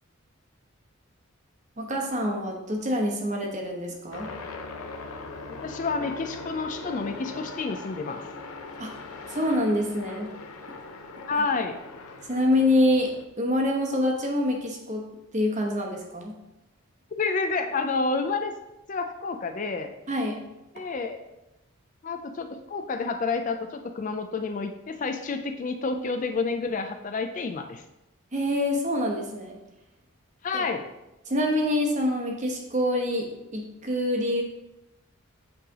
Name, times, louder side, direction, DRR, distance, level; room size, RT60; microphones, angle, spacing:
voice 1, 1.8-4.3 8.8-8.9 9.3-10.3 10.7-10.8 12.2-13.1 13.4-15.0 15.3-16.3 20.1-20.3 28.3-29.6 30.5-30.6 31.3-34.4, left 1 dB, 35° right, 1 dB, 0.9 m, -26 dB
sound 1, 4.1-13.3, left 3 dB, 85° left, 0.6 m, -40 dB
voice 2, 5.5-8.3 11.3-11.8 17.2-18.5 18.9-19.9 20.7-21.2 22.0-27.8 30.4-30.9, left 4 dB, 35° left, 6 dB, 0.3 m, -29 dB
8.5 x 3.3 x 3.6 m, 0.94 s
head